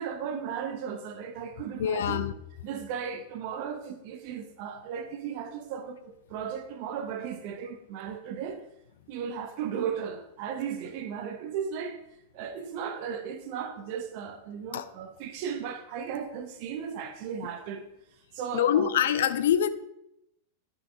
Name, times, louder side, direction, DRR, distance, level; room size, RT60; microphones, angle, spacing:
voice 1, 0.0-2.3 2.6-8.6 9.1-12.0 12.3-17.8 18.3-18.9, right 7 dB, 45° right, 0.9 m, -36 dB
voice 2, 1.8-2.3 14.7-14.8 18.5-19.7, left 9 dB, 60° left, 0.4 m, -24 dB
9.6 x 5.3 x 3.7 m
figure-of-eight pair, 90°, 0 cm